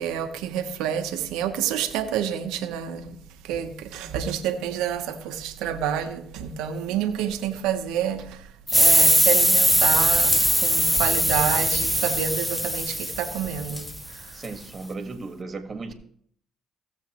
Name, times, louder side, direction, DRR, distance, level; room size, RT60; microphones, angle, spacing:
voice 1, 0.0-3.2 3.4-8.4 8.7-14.3, right 9 dB, 85° right, 1.0 m, -28 dB
sound 1, 8.7-14.0, equal, ahead, 0.5 m, -21 dB
sound 2, 9.7-10.7 12.5-13.2 13.6-14.1 14.4-14.8, left 2 dB, 25° left, 1.4 m, -35 dB
voice 2, 14.3-15.9, right 3 dB, 40° right, 1.8 m, -35 dB
16.5 x 7.2 x 3.1 m
supercardioid pair, 60°, 0 cm